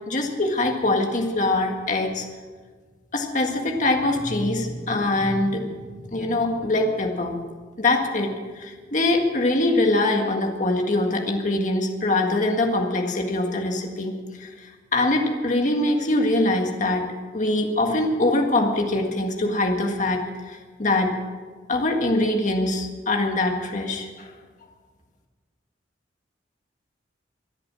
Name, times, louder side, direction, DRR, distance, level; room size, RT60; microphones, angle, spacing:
voice 1, 0.1-2.2 3.1-5.7 6.0-7.3 7.8-21.1 21.7-24.3, left 2 dB, 40° left, 2 dB, 1.7 m, -23 dB
24.5 x 8.8 x 6.1 m, 1.4 s
head